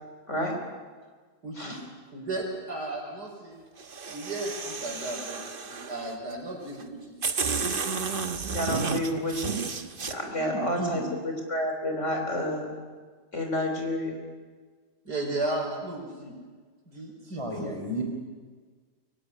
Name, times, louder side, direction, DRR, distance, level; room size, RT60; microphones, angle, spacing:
voice 1, 0.3-0.6 1.6-1.8 8.5-9.6 10.1-12.7 13.3-14.2, left 1 dB, 45° left, 3 dB, 3.8 m, -30 dB
voice 2, 1.4-1.7 2.1-3.6 4.1-7.2 10.4-11.0 15.1-16.3 16.9-17.7, right 2 dB, 75° right, -2 dB, 5.4 m, -34 dB
sound 1, 3.8-6.1 6.8-6.9 7.2-10.1, right 5 dB, 35° right, 1.2 m, -32 dB
voice 3, 17.3-18.0, equal, 15° right, 2 dB, 4.3 m, -32 dB
23.5 x 16.0 x 10.0 m, 1.5 s
omnidirectional pair, 1.8 m